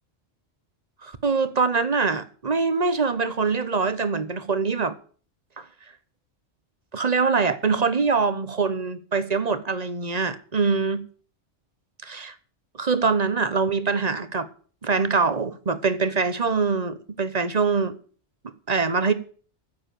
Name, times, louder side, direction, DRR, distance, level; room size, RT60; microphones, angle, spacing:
voice 1, 1.0-5.0 5.6-5.7 6.9-11.0 12.0-12.3 12.8-14.5 14.8-17.9 18.7-19.1, right 4 dB, 35° right, 1.1 m, -24 dB
10.0 x 7.5 x 9.1 m
omnidirectional pair, 1.2 m